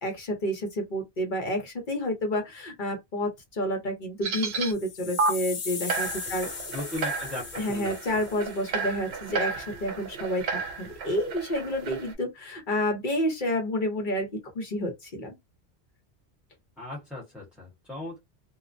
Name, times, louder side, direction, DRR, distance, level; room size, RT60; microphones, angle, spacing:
voice 1, 0.0-6.5 7.6-14.3 14.5-15.4, equal, 50° left, 0.9 m, -29 dB
sound 1, 4.2-4.7 5.2-5.3 5.9-12.1, right 4 dB, 70° right, 0.8 m, -32 dB
sound 2, 4.6-8.8, left 6 dB, 80° left, 0.9 m, -38 dB
voice 2, 6.7-7.9 16.8-18.2, left 2 dB, ahead, 0.9 m, -37 dB
2.4 x 2.0 x 2.5 m
omnidirectional pair, 1.1 m